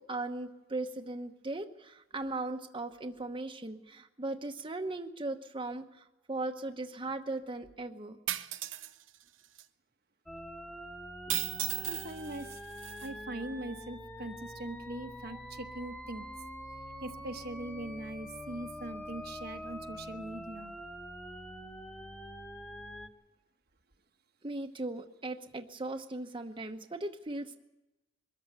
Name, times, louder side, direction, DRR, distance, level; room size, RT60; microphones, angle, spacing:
voice 1, 0.0-8.2 24.4-27.6, right 2 dB, 25° right, 4 dB, 1.0 m, -38 dB
sound 1, 8.3-8.9 9.6-9.7 11.3-13.1, right 14 dB, 85° right, 0.8 m, -35 dB
sound 2, 10.3-23.1, equal, 5° left, 1.3 m, -45 dB
voice 2, 11.8-12.6 13.0-16.3 17.0-20.7, right 1 dB, 55° right, 5 dB, 1.2 m, -41 dB
22.5 x 14.0 x 9.1 m, 0.99 s
head